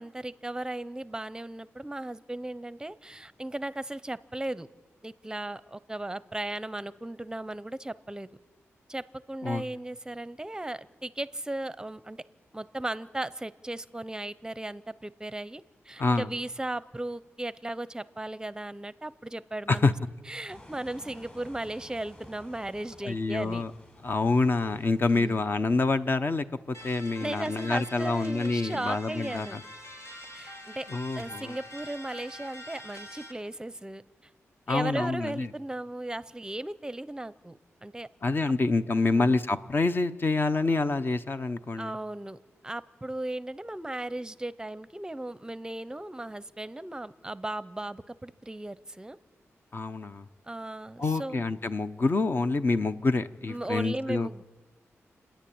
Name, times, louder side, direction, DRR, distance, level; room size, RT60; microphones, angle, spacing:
voice 1, 0.0-4.7 5.0-8.3 8.9-12.2 12.5-19.9 20.3-23.6 25.1-25.4 27.2-29.6 30.3-30.9 31.1-34.0 34.7-38.1 38.9-39.4 41.8-42.4 42.6-49.2 50.5-51.5 53.5-54.4, right 1 dB, 15° right, 16 dB, 0.7 m, -36 dB
voice 2, 19.7-20.1 23.0-23.7 24.0-29.6 30.9-31.6 34.7-35.5 38.2-41.9 49.7-50.3 51.0-54.3, left 3 dB, 45° left, 10 dB, 0.8 m, -27 dB
sound 1, 20.5-26.1, left 1 dB, 25° left, 5.4 m, -53 dB
sound 2, 26.7-33.3, left 1 dB, 80° left, 2.6 m, -45 dB
29.0 x 10.0 x 8.7 m, 1.3 s
cardioid pair, 80°, 5 cm